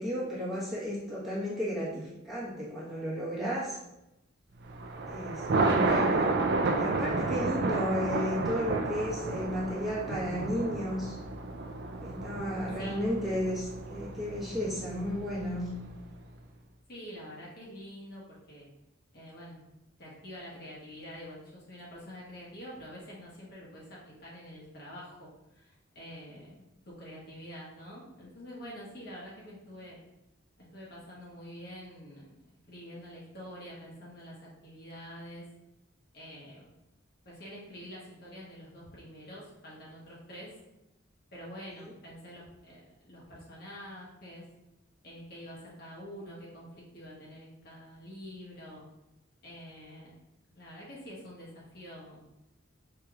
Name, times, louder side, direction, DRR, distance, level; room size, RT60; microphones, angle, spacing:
voice 1, 0.0-3.8 5.0-6.3 6.8-11.1 12.0-15.6 41.8-41.9, equal, ahead, -10 dB, 1.1 m, -33 dB
Thunder, 4.7-16.0, right 3 dB, 55° right, 0.3 m, -31 dB
voice 2, 5.5-5.9 12.8-13.0 16.9-18.7 19.1-19.6 20.0-30.0 30.6-32.3 32.7-35.5 36.1-36.7 37.2-40.6 41.3-44.5 45.0-48.8 49.4-50.2 50.5-52.2, equal, 50° left, -6 dB, 1.1 m, -46 dB
4.8 x 2.9 x 2.4 m, 0.91 s
head